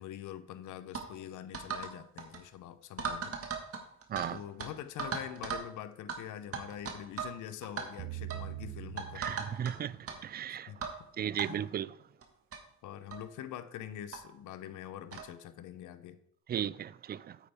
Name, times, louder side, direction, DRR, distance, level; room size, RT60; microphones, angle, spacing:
voice 1, 0.0-3.3 4.3-9.3 10.5-10.8 11.4-11.7 12.8-16.2, left 10 dB, 85° left, 0.7 m, -44 dB
sound 1, 0.9-1.1 1.5-1.9 2.2-2.4 3.0-4.3 4.6-4.7 5.0-5.7 6.1-6.2 6.5-7.4 7.6-7.9 8.3-8.5 9.0-9.7 10.1-10.2 10.8-11.0 11.4-11.5 12.2-12.3 12.5-12.6 13.1-13.3 14.1-14.2 15.1-15.3, right 6 dB, 50° right, 1.6 m, -37 dB
sound 2, 8.0-10.2, right 16 dB, 75° right, 0.7 m, -43 dB
voice 2, 9.2-9.9 10.2-10.7 11.2-11.9 16.5-17.2, right 9 dB, 35° right, 0.4 m, -35 dB
8.8 x 8.4 x 3.5 m
cardioid pair, 90°, 30 cm